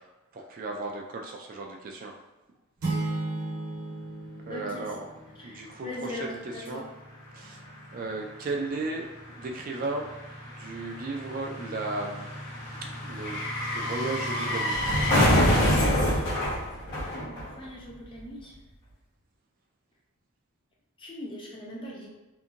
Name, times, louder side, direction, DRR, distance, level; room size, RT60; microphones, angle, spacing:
voice 1, 0.3-2.1 4.5-5.1 5.4-6.8 7.3-7.6 7.9-10.1 10.4-12.3 13.0-13.5 13.7-14.7, right 3 dB, 40° right, 1 dB, 0.3 m, -35 dB
sound 1, 2.8-5.6, right 2 dB, 85° right, 0.8 m, -34 dB
voice 2, 4.5-4.9 5.4-6.8 17.1-18.5 21.0-22.1, left 1 dB, 25° left, -3 dB, 0.6 m, -40 dB
sound 2, 7.2-7.3 7.5-17.9 18.1-18.2, equal, 55° left, 1.1 m, -27 dB
2.8 x 2.5 x 2.5 m, 1.1 s
head